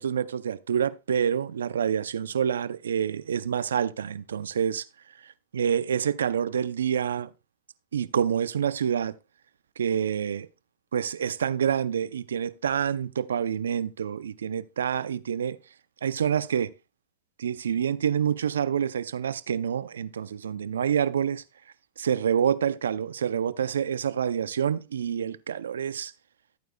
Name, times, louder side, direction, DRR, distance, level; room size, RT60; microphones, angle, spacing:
voice 1, 0.0-4.8 5.2-7.3 7.9-9.2 9.8-10.5 10.9-15.6 16.0-16.7 17.4-21.4 22.0-26.1, right 8 dB, 85° right, 0.5 m, -27 dB
13.5 x 9.1 x 2.2 m
hypercardioid pair, 100°, 0 cm